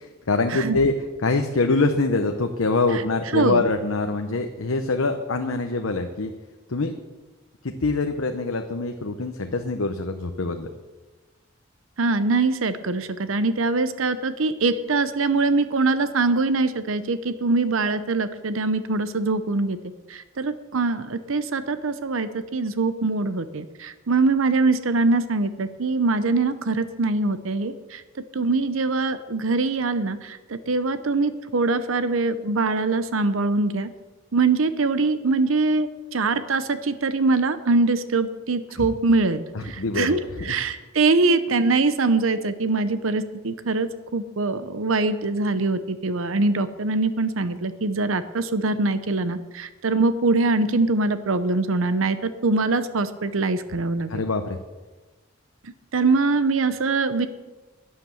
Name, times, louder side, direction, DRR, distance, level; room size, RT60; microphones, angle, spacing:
voice 1, 0.3-0.9 1.2-6.3 6.7-6.9 7.6-10.7 38.8-38.9 39.5-40.5 54.1-54.6, left 3 dB, 85° left, 5 dB, 0.9 m, -24 dB
voice 2, 3.3-3.6 12.0-19.8 20.1-28.0 28.3-33.9 34.3-54.2 55.6-57.3, right 3 dB, 75° right, 12 dB, 0.8 m, -23 dB
12.0 x 9.8 x 7.0 m, 1.2 s
head